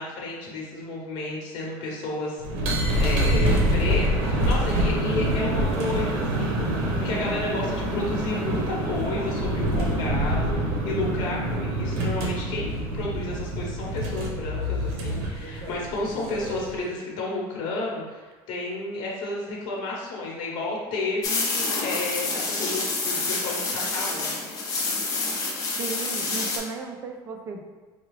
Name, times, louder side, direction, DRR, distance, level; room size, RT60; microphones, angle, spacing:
voice 1, 0.0-2.4 2.7-10.5 10.8-12.7 12.9-24.3, left 2 dB, 60° left, -3 dB, 1.0 m, -32 dB
sound 1, 2.4-16.8, right 1 dB, 80° right, 0.9 m, -26 dB
sound 2, 21.2-26.6, left 3 dB, 40° left, 0.7 m, -28 dB
voice 2, 25.8-27.6, right 4 dB, 30° right, 3 dB, 0.4 m, -35 dB
4.7 x 2.3 x 3.1 m, 1.3 s
cardioid pair, 170°, 10 cm